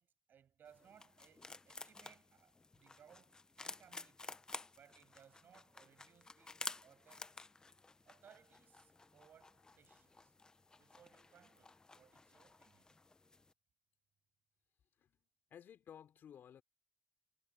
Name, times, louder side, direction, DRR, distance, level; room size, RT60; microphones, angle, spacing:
voice 1, 0.0-4.3 4.7-6.6 6.8-7.4 8.0-10.3 10.8-12.9, right 8 dB, 70° right, 6.6 m, -66 dB
sound 1, 0.7-13.5, left 3 dB, 20° left, 0.7 m, -53 dB
voice 2, 15.0-16.6, left 9 dB, 80° left, 5.2 m, -57 dB
wide cardioid pair, 140°, 3 cm